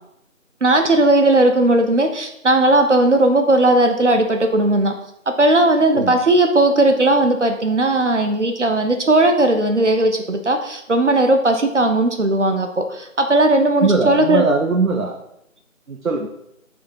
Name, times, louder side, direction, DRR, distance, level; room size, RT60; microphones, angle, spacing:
voice 1, 0.6-4.9 5.4-14.4, right 2 dB, 60° right, 5 dB, 0.8 m, -16 dB
voice 2, 13.8-15.2 15.9-16.3, right 3 dB, 75° right, 2 dB, 1.1 m, -20 dB
6.4 x 3.6 x 5.4 m, 0.78 s
figure-of-eight pair, 170°, 41 cm